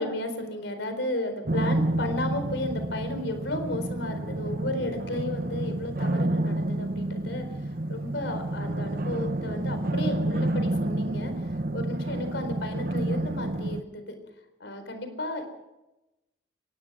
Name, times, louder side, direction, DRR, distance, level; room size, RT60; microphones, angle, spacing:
voice 1, 0.0-14.1 14.6-15.5, left 1 dB, 70° left, 8 dB, 4.3 m, -33 dB
sound 1, 1.4-13.8, right 1 dB, 50° right, 0.9 m, -29 dB
23.5 x 19.0 x 6.2 m, 0.98 s
head